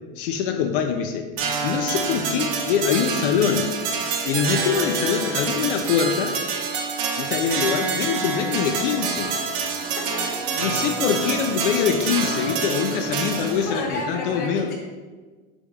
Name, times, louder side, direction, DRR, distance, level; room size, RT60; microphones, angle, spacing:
voice 1, 0.2-1.3 1.6-3.7 4.2-6.4 7.2-9.4 10.6-14.7, left 7 dB, 65° left, 5 dB, 0.4 m, -24 dB
sound 1, 1.4-13.8, right 5 dB, 65° right, 0.7 m, -27 dB
sound 2, 8.5-13.9, right 1 dB, 30° right, 1.1 m, -42 dB
voice 2, 13.6-14.7, left 2 dB, 30° left, -1 dB, 0.8 m, -30 dB
4.1 x 3.5 x 3.5 m, 1.4 s
supercardioid pair, 170°, 29 cm